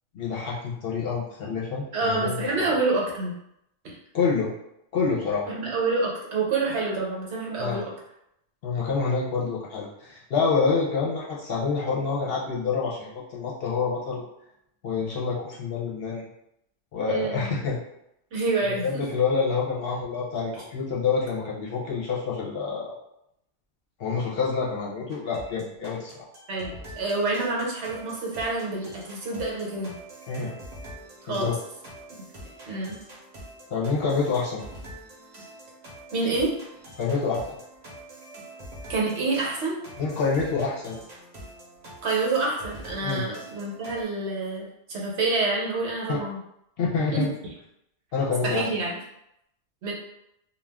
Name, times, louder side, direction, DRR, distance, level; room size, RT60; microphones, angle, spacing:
voice 1, 0.1-2.7 4.1-4.5 4.9-5.5 7.6-7.8 8.6-14.2 14.8-16.2 16.9-17.8 18.8-22.9 24.0-26.1 30.3-30.5 31.3-31.5 33.7-34.6 37.0-37.6 40.0-41.0 43.0-43.2 46.1-46.2 46.8-47.3 48.1-48.6, left 5 dB, 60° left, -3 dB, 0.8 m, -27 dB
voice 2, 1.9-3.3 3.8-4.0 5.5-7.9 17.1-17.5 18.3-19.0 26.5-29.9 31.2-31.5 32.7-33.0 36.1-36.5 38.9-39.8 42.0-46.4 47.1-47.2 48.4-49.0 49.8-49.9, right 3 dB, 70° right, -3 dB, 1.0 m, -27 dB
sound 1, 25.1-44.0, right 1 dB, 40° right, 0.8 m, -45 dB
2.4 x 2.2 x 3.3 m, 0.80 s
omnidirectional pair, 1.2 m